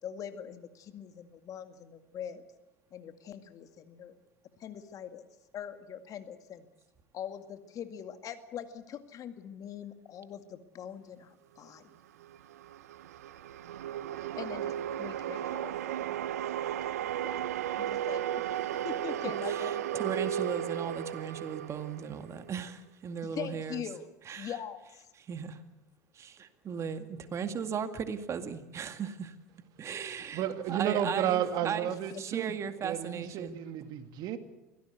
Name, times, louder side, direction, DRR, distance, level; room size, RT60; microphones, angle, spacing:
voice 1, 0.0-2.4 2.9-4.1 4.6-5.2 5.5-6.7 7.1-11.9 14.4-16.1 17.2-17.4 17.8-20.1 23.2-24.0 24.4-25.0 31.9-32.2, left 9 dB, 45° left, 8 dB, 2.1 m, -42 dB
sound 1, 12.2-22.6, right 11 dB, 80° right, 0.8 m, -35 dB
voice 2, 19.5-23.8 24.3-24.5 25.2-25.6 26.1-29.3 29.8-31.8 32.2-33.6, right 7 dB, 35° right, 8 dB, 2.2 m, -37 dB
voice 3, 30.3-32.6 32.8-34.4, right 10 dB, 55° right, 9 dB, 2.1 m, -32 dB
24.0 x 17.0 x 8.2 m, 0.99 s
hypercardioid pair, 80°, 8 cm